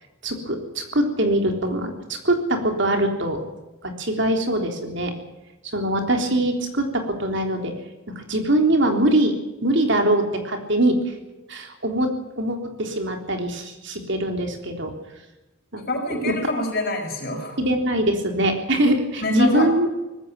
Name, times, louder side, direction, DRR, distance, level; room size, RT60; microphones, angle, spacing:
voice 1, 0.2-3.4 3.8-5.1 5.6-7.7 8.2-9.3 9.6-11.1 11.5-12.1 12.4-14.9 15.7-15.8 16.1-16.3 17.6-19.9, right 1 dB, 60° right, 4 dB, 3.6 m, -22 dB
voice 2, 15.8-17.6 19.2-19.7, left 1 dB, 45° left, 3 dB, 6.1 m, -25 dB
19.5 x 16.0 x 9.5 m, 1.0 s
head